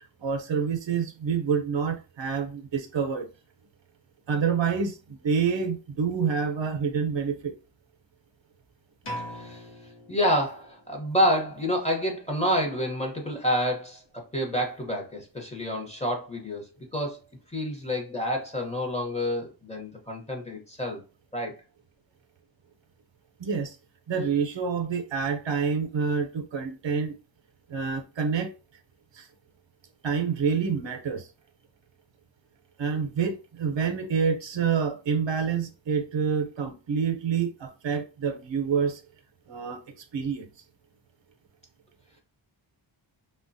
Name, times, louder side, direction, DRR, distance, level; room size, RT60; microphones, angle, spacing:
voice 1, 0.2-3.3 4.3-7.5 23.4-23.8 24.1-27.2 27.7-28.5 29.1-29.3 30.0-31.3 32.8-39.0 39.5-39.8 40.1-40.5, right 6 dB, 70° right, 0.7 m, -27 dB
sound 1, 9.0-10.9, equal, 65° left, 0.9 m, -40 dB
voice 2, 9.3-9.7 10.1-16.6 16.9-17.2 17.5-21.0 21.3-21.6, equal, 15° left, 0.8 m, -28 dB
3.3 x 2.2 x 2.6 m
wide cardioid pair, 100°, 46 cm